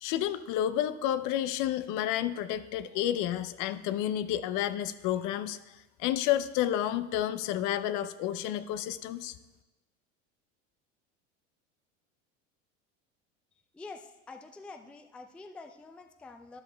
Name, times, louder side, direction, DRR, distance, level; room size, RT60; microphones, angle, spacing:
voice 1, 0.0-5.6 6.0-9.4, left 11 dB, 55° left, 13 dB, 0.6 m, -30 dB
voice 2, 13.7-16.6, left 3 dB, 5° left, 7 dB, 0.3 m, -47 dB
12.5 x 11.0 x 2.2 m, 1.1 s
hypercardioid pair, 85°, 38 cm